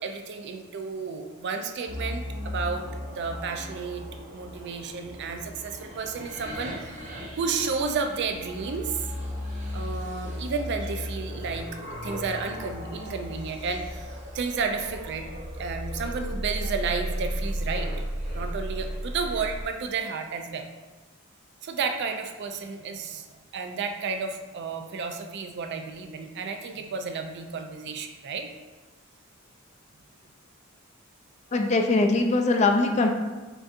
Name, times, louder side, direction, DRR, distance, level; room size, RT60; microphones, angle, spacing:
voice 1, 0.0-4.0 4.3-9.0 9.7-11.7 12.0-17.9 18.3-20.7 21.6-23.3 23.5-28.5, right 5 dB, 55° right, 6 dB, 0.4 m, -32 dB
sound 1, 1.9-19.6, equal, 35° right, 0.8 m, -35 dB
voice 2, 31.5-33.1, left 3 dB, 35° left, 4 dB, 0.4 m, -21 dB
5.9 x 2.7 x 2.5 m, 1.2 s
head